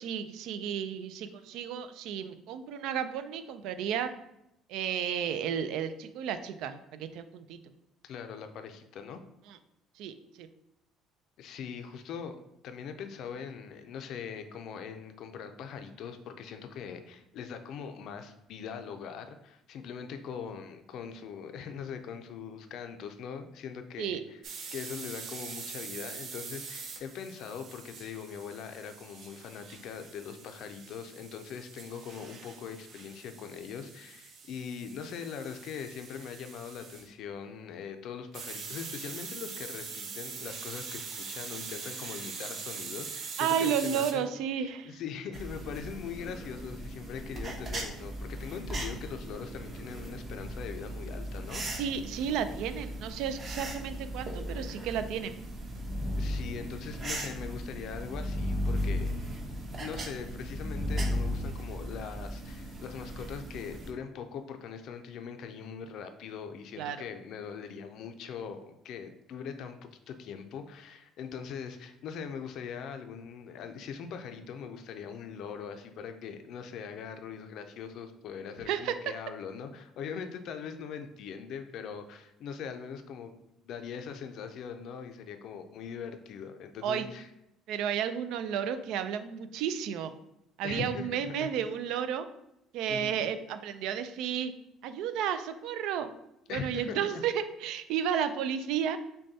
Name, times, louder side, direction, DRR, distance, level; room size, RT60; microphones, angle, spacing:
voice 1, 0.0-4.1 4.7-7.6 9.5-9.6 10.0-10.5 24.0-24.2 43.4-44.9 51.8-55.4 66.8-67.1 78.7-78.9 86.8-87.1 87.7-90.1 90.6-92.3 92.7-94.5 94.8-96.1 96.5-99.0, right 8 dB, 75° right, 11 dB, 0.3 m, -32 dB
voice 2, 8.0-9.2 11.4-24.4 24.7-44.3 44.6-51.6 56.2-59.1 59.8-83.3 83.6-87.3 90.6-91.5 92.9-93.2 96.5-97.0 98.1-98.3, left 7 dB, 65° left, 7 dB, 0.4 m, -41 dB
sound 1, 24.4-37.1 38.3-44.1, right 5 dB, 55° right, 0.7 m, -43 dB
sound 2, 45.3-63.9, right 1 dB, 35° right, 0.9 m, -40 dB
sound 3, 55.0-61.5, left 1 dB, 5° right, 0.9 m, -34 dB
6.2 x 2.2 x 2.7 m, 0.83 s
cardioid pair, 110°, 0 cm